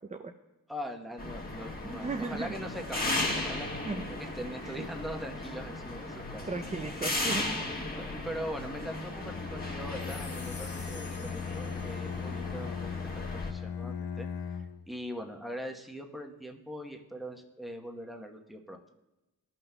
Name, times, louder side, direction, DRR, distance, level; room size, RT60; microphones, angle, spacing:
voice 1, 0.7-3.8 4.2-6.4 7.9-14.3 14.9-18.8, equal, ahead, 2 dB, 0.9 m, -41 dB
sound 1, 1.2-13.5, left 2 dB, 25° left, 1.4 m, -36 dB
voice 2, 1.8-2.5 3.8-4.0 4.6-4.9 6.4-7.5, right 3 dB, 20° right, 5 dB, 0.5 m, -36 dB
Bowed string instrument, 9.2-14.9, left 6 dB, 80° left, 0.6 m, -38 dB
sound 2, 9.9-12.4, left 4 dB, 55° left, 1.1 m, -49 dB
14.0 x 5.9 x 2.2 m, 1.0 s
cardioid pair, 65°, 37 cm